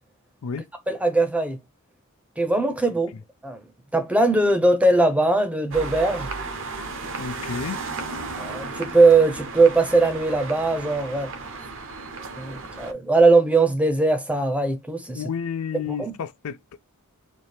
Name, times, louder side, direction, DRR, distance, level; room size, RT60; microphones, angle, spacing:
voice 1, 0.9-1.6 2.4-3.1 3.4-3.6 3.9-6.3 8.4-11.3 12.4-15.2 15.7-16.2, right 3 dB, 5° right, 0.7 m, -20 dB
sound 1, 5.7-12.9, right 3 dB, 60° right, 0.8 m, -34 dB
voice 2, 7.2-7.8 15.1-16.6, left 6 dB, 70° left, 0.4 m, -30 dB
4.3 x 2.7 x 3.3 m
head